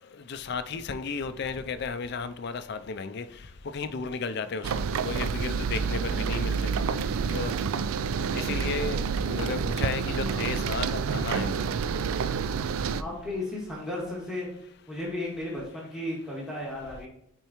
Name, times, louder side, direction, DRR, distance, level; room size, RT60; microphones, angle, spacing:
voice 1, 0.3-3.2 3.7-4.7 5.0-6.6 7.3-7.5 8.3-9.0 9.3-10.9 11.1-11.6, left 5 dB, 55° left, 10 dB, 0.4 m, -33 dB
sound 1, 4.6-13.0, right 6 dB, 85° right, 0.3 m, -28 dB
voice 2, 12.5-14.5 14.9-17.1, left 1 dB, 5° right, -5 dB, 1.7 m, -35 dB
9.0 x 4.5 x 3.0 m, 0.73 s
head